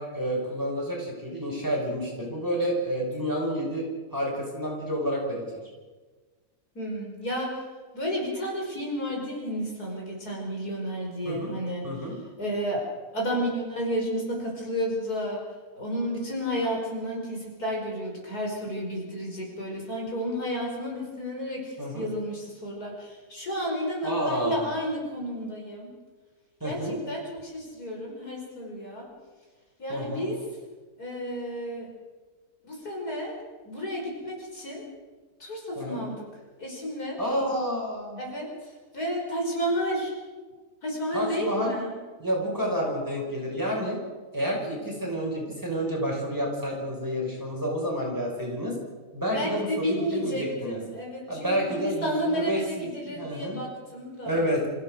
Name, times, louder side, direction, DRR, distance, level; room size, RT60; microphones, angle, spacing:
voice 1, 0.0-3.9 4.1-5.4 11.3-11.5 11.8-12.2 21.8-22.1 24.0-24.7 26.6-27.0 29.9-30.3 35.8-36.1 37.2-38.2 41.1-41.7 42.2-44.0 44.3-48.8 49.1-50.8 51.3-53.6 54.2-54.6, equal, 10° right, -2 dB, 5.7 m, -29 dB
voice 2, 6.8-7.6 7.9-11.9 12.4-12.8 13.1-15.4 15.7-25.9 26.6-26.8 27.1-29.1 29.8-30.4 31.0-31.9 32.6-33.4 33.6-34.8 35.4-36.2 36.6-37.2 38.2-40.1 40.8-41.9 49.3-54.4, equal, 70° left, -1 dB, 5.7 m, -31 dB
27.0 x 15.5 x 6.5 m, 1.4 s
omnidirectional pair, 1.7 m